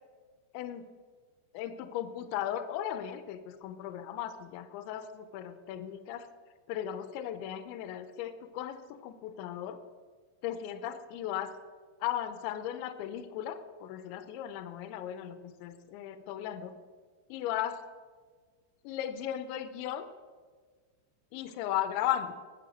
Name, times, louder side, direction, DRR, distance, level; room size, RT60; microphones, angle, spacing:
voice 1, 0.5-0.9 1.5-6.3 6.7-9.8 10.4-11.5 12.0-16.7 17.3-17.8 18.9-20.1 21.3-22.4, left 11 dB, 85° left, 11 dB, 2.8 m, -36 dB
20.5 x 7.1 x 6.4 m, 1.5 s
omnidirectional pair, 5.8 m